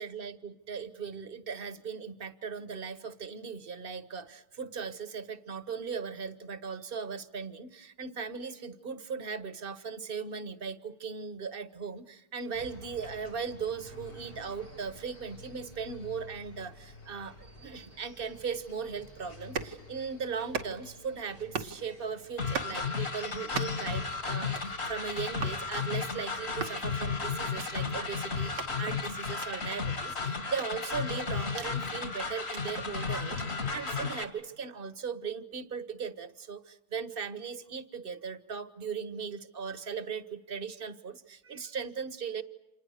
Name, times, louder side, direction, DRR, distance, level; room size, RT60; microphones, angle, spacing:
voice 1, 0.0-42.4, right 6 dB, 35° right, 13 dB, 1.2 m, -38 dB
sound 1, 12.5-30.1, left 2 dB, 80° left, 5.3 m, -52 dB
sound 2, 19.4-19.8 20.4-21.0 21.4-21.8 22.4-22.8 23.4-23.9 24.4-24.7 25.4-25.6 26.4-26.8 27.4-27.7 28.4-28.7 29.4-29.5 30.4-31.7 32.3-32.6 33.4-33.5, right 6 dB, 90° right, 2.1 m, -39 dB
sound 3, 22.4-34.2, left 4 dB, 50° left, 2.9 m, -34 dB
29.5 x 27.5 x 6.5 m, 0.90 s
omnidirectional pair, 1.8 m